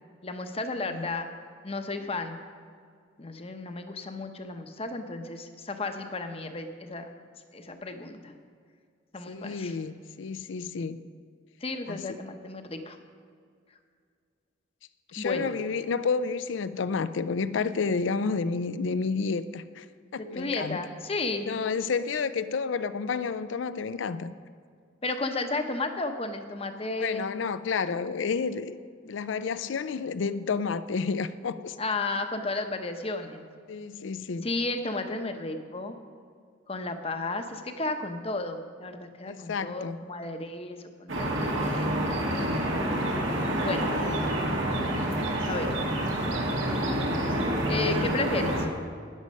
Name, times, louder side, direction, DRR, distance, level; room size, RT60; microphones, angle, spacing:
voice 1, 0.2-1.3 1.6-2.4 3.2-7.1 7.5-8.3 9.1-9.8 11.6-13.0 15.2-15.6 20.2-21.5 25.0-27.3 31.8-33.4 34.4-36.0 36.7-41.9 43.6-43.9 45.5-45.7 47.7-48.7, left 3 dB, 30° left, 7 dB, 0.8 m, -33 dB
voice 2, 9.3-11.0 11.9-12.0 15.1-19.9 20.1-20.8 21.4-24.3 27.0-28.8 29.0-31.8 33.7-34.5 39.3-40.0, left 5 dB, 75° left, 13 dB, 0.4 m, -30 dB
sound 1, 41.1-48.7, right 1 dB, 80° right, 1.9 m, -28 dB
13.0 x 9.6 x 5.4 m, 2.2 s
head